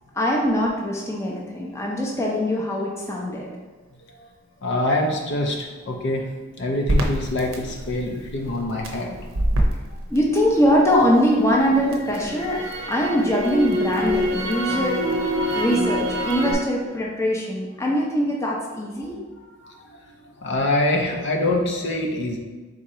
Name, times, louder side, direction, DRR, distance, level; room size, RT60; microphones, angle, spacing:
voice 1, 0.1-3.5 10.1-12.6 12.9-15.2 15.5-19.2, equal, 15° left, -3 dB, 0.5 m, -22 dB
voice 2, 4.6-6.3 6.6-9.2 9.9-10.0 19.6-22.4, left 1 dB, 55° left, 1 dB, 0.6 m, -25 dB
Crackle, 6.9-11.0 11.4-16.5, equal, 70° right, 0.6 m, -25 dB
3.7 x 2.8 x 4.2 m, 1.4 s
head